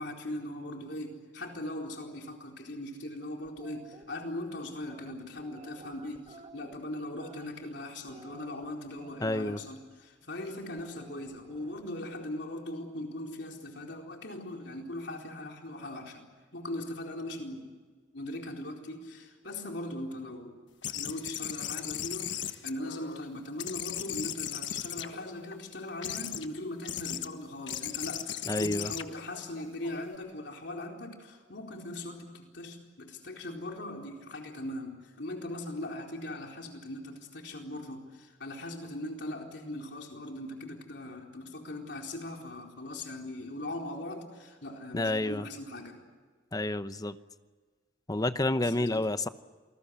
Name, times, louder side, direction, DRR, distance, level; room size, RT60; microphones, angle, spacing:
voice 1, 0.0-16.3 16.5-17.7 18.1-20.6 20.9-46.0 48.6-49.1, left 1 dB, 65° left, 1 dB, 4.3 m, -40 dB
sound 1, 3.4-4.0 4.8-7.7 8.1-9.6 10.8-12.1, right 2 dB, 30° right, 2.1 m, -53 dB
voice 2, 9.2-9.6 28.5-28.9 44.9-45.5 46.5-47.2 48.1-49.3, left 2 dB, 20° left, 12 dB, 0.8 m, -29 dB
sound 2, 20.8-23.2 23.6-25.5 26.0-26.5 26.8-27.3 27.7-30.2, left 10 dB, 90° left, 1.4 m, -37 dB
28.0 x 20.5 x 8.2 m, 1.5 s
head